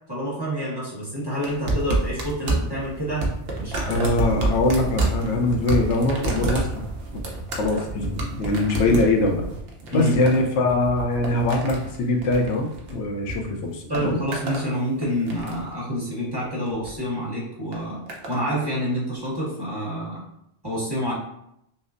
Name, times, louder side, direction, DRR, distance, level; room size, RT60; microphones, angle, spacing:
voice 1, 0.1-3.3 3.6-3.9 9.9-10.2 13.9-18.0 18.3-20.2 20.6-21.1, equal, 20° right, -6 dB, 1.2 m, -27 dB
sound 1, 1.4-13.4 13.6-14.7 15.0-15.7 16.7-16.9 17.7-18.4 19.3-19.4, right 2 dB, 60° right, 0.9 m, -29 dB
voice 2, 3.9-6.9 7.6-9.5 9.9-14.2, left 2 dB, 80° left, 3 dB, 0.9 m, -22 dB
5.6 x 2.0 x 2.5 m, 0.77 s
omnidirectional pair, 1.2 m